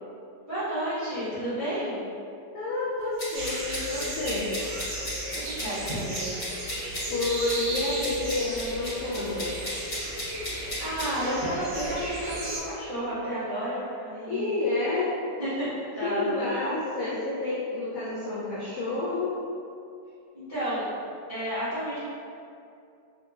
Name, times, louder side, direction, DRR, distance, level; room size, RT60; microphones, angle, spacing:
voice 1, 0.5-2.0 5.3-6.3 10.8-14.6 15.4-16.4 20.3-20.8 21.3-22.0, right 1 dB, 25° right, -15 dB, 0.8 m, -31 dB
voice 2, 2.5-4.5 7.1-9.5 14.3-15.1 16.0-19.3, left 2 dB, 70° left, -8 dB, 0.8 m, -29 dB
sound 1, 3.2-11.1, left 1 dB, 55° left, 1.7 m, -35 dB
sound 2, 3.3-12.6, right 1 dB, 65° right, 0.7 m, -35 dB
3.3 x 2.9 x 2.4 m, 2.5 s
omnidirectional pair, 1.9 m